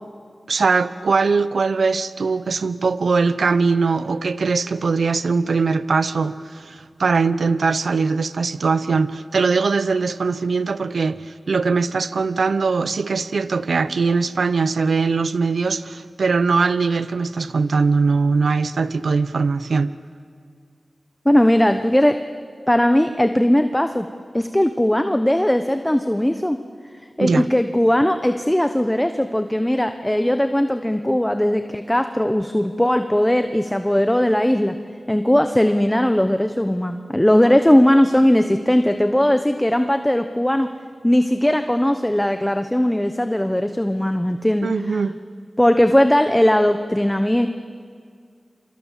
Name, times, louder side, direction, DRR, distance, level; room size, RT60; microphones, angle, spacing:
voice 1, 0.5-20.0 27.2-27.5 44.6-45.2, right 4 dB, 85° right, 0.8 m, -21 dB
voice 2, 21.2-22.2 22.7-24.1 24.3-26.6 27.2-34.7 35.1-40.7 41.0-45.0 45.6-47.5, left 1 dB, 10° left, 1.0 m, -18 dB
28.0 x 25.0 x 7.5 m
wide cardioid pair, 60°, 0 cm